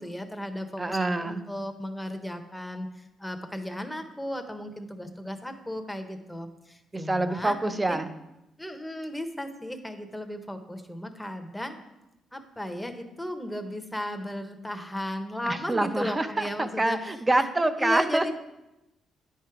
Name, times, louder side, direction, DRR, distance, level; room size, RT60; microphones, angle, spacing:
voice 1, 0.0-8.0 8.6-11.8 12.3-17.0 17.3-17.5 17.8-18.3, left 1 dB, 5° left, 7 dB, 0.9 m, -35 dB
voice 2, 0.8-1.4 6.9-8.1 15.5-18.3, right 2 dB, 20° right, 10 dB, 0.6 m, -26 dB
9.8 x 4.6 x 4.8 m, 0.95 s
cardioid pair, 90°, 0 cm